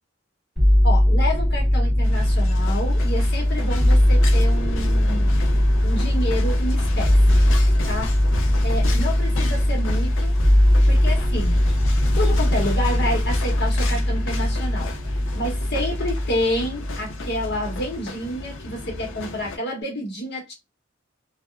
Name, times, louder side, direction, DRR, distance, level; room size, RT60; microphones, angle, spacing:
sound 1, 0.6-18.0 18.3-19.1, left 1 dB, ahead, 1.7 m, -20 dB
voice 1, 0.8-5.4 5.8-7.4 7.9-8.1 8.6-10.4 10.9-11.6 12.2-14.9 15.4-20.5, equal, 60° left, 0.8 m, -29 dB
sound 2, 2.0-19.6, left 3 dB, 90° left, 0.5 m, -34 dB
2.7 x 2.0 x 2.4 m
head